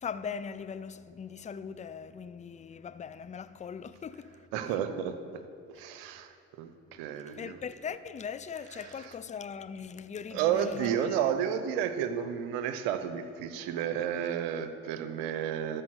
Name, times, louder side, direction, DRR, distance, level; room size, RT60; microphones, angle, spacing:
voice 1, 0.0-4.9 7.3-11.3, left 6 dB, 20° left, 0.4 m, -40 dB
voice 2, 4.5-5.1 5.7-7.6 10.3-15.8, right 9 dB, 85° right, 0.8 m, -31 dB
13.5 x 4.8 x 6.4 m
supercardioid pair, 65°, 34 cm